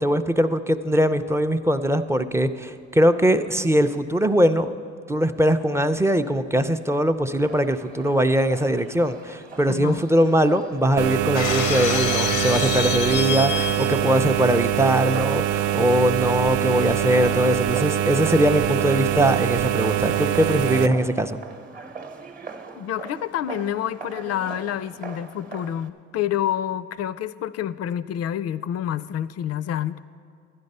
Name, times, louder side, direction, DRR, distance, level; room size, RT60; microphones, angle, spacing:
voice 1, 0.0-4.7 5.1-21.4, right 1 dB, 10° right, 8 dB, 0.5 m, -21 dB
sound 1, 7.4-25.9, right 5 dB, 30° right, 1.0 m, -41 dB
voice 2, 9.7-10.1 22.8-30.0, left 10 dB, 55° left, 16 dB, 0.4 m, -28 dB
sound 2, 11.0-20.9, right 11 dB, 80° right, 0.4 m, -24 dB
Shatter, 11.3-14.1, left 9 dB, 90° left, 0.7 m, -27 dB
11.5 x 10.5 x 5.4 m, 2.2 s
cardioid pair, 90°, 30 cm